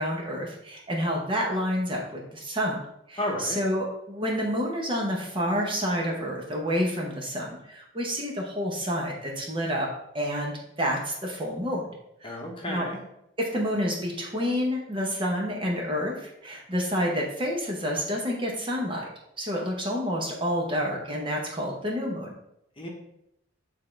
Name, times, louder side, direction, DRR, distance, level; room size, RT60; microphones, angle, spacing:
voice 1, 0.0-2.0 2.3-2.8 3.1-11.9 12.2-12.4 12.7-12.9 13.4-19.0 19.4-22.3, equal, 25° right, -1 dB, 0.9 m, -29 dB
voice 2, 3.2-3.6 12.2-13.0 22.8-22.9, left 1 dB, 25° left, -1 dB, 1.1 m, -32 dB
8.2 x 3.7 x 3.3 m, 0.79 s
head